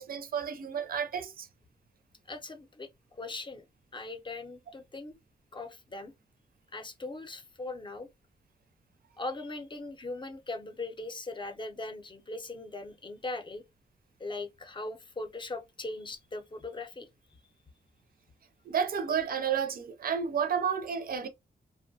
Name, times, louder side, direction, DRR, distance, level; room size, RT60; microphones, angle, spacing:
voice 1, 0.0-1.5 18.7-21.3, right 7 dB, 55° right, 0.5 m, -31 dB
voice 2, 2.3-2.9 3.2-3.6 3.9-5.1 5.5-6.1 6.7-8.1 9.2-13.6 14.2-17.1, left 2 dB, 25° left, 0.6 m, -39 dB
2.6 x 2.1 x 2.6 m
cardioid pair, 80°, 18 cm